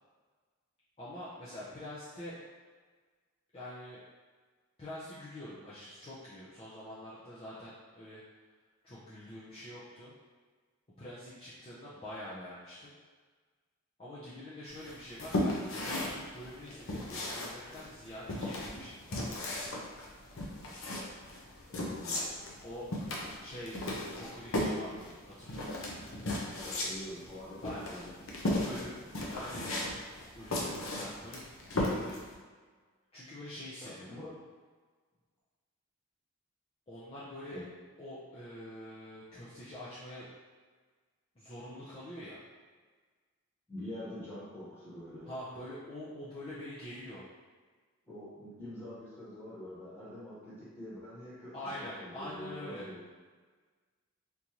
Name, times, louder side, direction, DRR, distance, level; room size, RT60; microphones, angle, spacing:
voice 1, 1.0-2.4 3.5-4.0 4.8-8.2 8.8-10.1 11.0-12.9 14.0-19.5 22.6-22.9 23.4-25.9 27.6-27.9 28.4-29.7 30.3-32.1 33.1-34.2 36.9-37.6 38.0-40.3 41.4-42.4 45.2-47.3 51.5-52.9, left 1 dB, 25° left, -10 dB, 0.6 m, -45 dB
sound 1, 14.8-32.3, left 1 dB, 75° left, 0.6 m, -36 dB
voice 2, 21.7-22.4 26.6-28.1 33.8-34.3 37.5-37.6 43.7-45.3 48.1-53.0, left 1 dB, 10° left, -10 dB, 1.2 m, -45 dB
3.6 x 2.7 x 2.9 m, 1.5 s
head